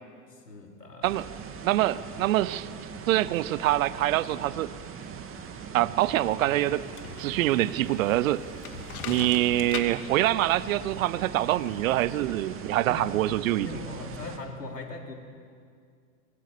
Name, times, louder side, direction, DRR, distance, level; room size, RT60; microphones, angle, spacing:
voice 1, 0.3-1.2 9.1-9.3 12.8-13.2 13.6-15.1, left 2 dB, 85° left, 1 dB, 4.0 m, -40 dB
sound 1, 1.0-14.4, right 6 dB, 25° right, 2.4 m, -41 dB
voice 2, 1.6-2.7 3.1-4.7 5.7-6.8 7.2-8.4 9.1-13.7, right 15 dB, 60° right, 18 dB, 1.0 m, -25 dB
sound 2, 6.7-12.2, left 7 dB, 65° left, 2.7 m, -42 dB
24.5 x 22.5 x 7.0 m, 2.2 s
hypercardioid pair, 95°, 47 cm